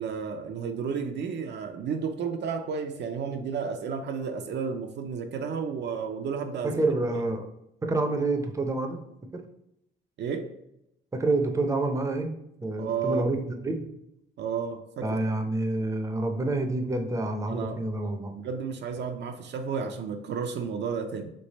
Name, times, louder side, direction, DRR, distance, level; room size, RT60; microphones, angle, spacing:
voice 1, 0.0-6.8 10.2-10.5 12.8-13.3 14.4-15.2 17.5-17.8 18.3-21.3, right 6 dB, 60° right, 5 dB, 0.5 m, -32 dB
voice 2, 6.6-7.5 7.8-9.0 9.3-9.4 11.1-12.3 12.6-13.4 13.6-13.9 15.0-18.3, right 2 dB, 15° right, 4 dB, 0.6 m, -28 dB
3.3 x 3.1 x 4.1 m, 0.80 s
cardioid pair, 90°, 20 cm